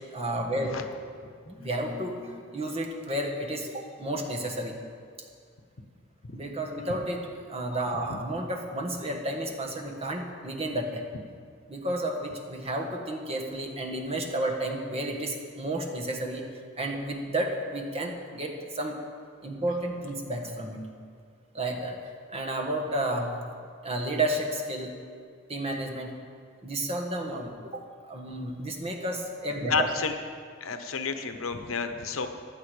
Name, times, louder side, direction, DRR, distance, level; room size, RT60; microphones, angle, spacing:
voice 1, 0.1-0.8 1.5-4.7 6.3-7.2 7.5-11.0 11.7-16.4 16.8-19.0 19.4-20.8 21.5-23.3 23.8-25.0 25.5-26.1 26.6-27.8 28.1-29.9, right 1 dB, 30° right, 1 dB, 1.5 m, -31 dB
voice 2, 29.7-30.1 30.6-32.3, left 4 dB, 80° left, 7 dB, 1.0 m, -30 dB
15.0 x 11.0 x 4.9 m, 2.1 s
head